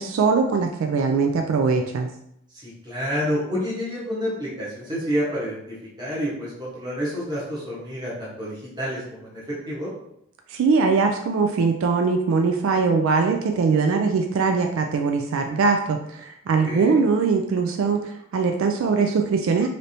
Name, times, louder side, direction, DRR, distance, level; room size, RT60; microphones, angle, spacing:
voice 1, 0.0-2.1 10.5-19.7, right 4 dB, 75° right, 4 dB, 0.3 m, -21 dB
voice 2, 2.6-9.9 16.6-17.0, equal, 20° right, -7 dB, 1.1 m, -29 dB
3.3 x 2.6 x 2.7 m, 0.75 s
head